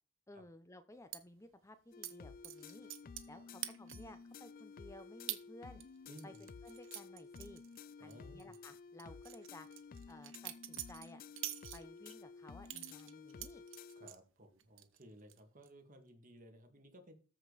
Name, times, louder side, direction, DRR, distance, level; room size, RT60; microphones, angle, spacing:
voice 1, 0.3-2.9 3.3-5.8 6.2-7.6 8.0-9.7 10.1-11.2 11.7-13.6, left 1 dB, 15° left, 10 dB, 0.7 m, -56 dB
sound 1, 1.1-1.2 2.0-2.1 2.4-3.3 3.6-4.2 4.6-4.7 5.3-5.4 5.8-8.1 8.4-8.6 9.0-12.1 12.7-14.2 14.6-15.0 15.3-15.7, right 13 dB, 75° right, 1.1 m, -46 dB
sound 2, 1.9-14.1, left 5 dB, 45° left, 0.4 m, -53 dB
voice 2, 3.3-3.7 6.1-6.5 8.0-8.5 14.0-17.1, equal, 45° right, 5 dB, 2.2 m, -58 dB
14.0 x 5.2 x 4.1 m, 0.35 s
head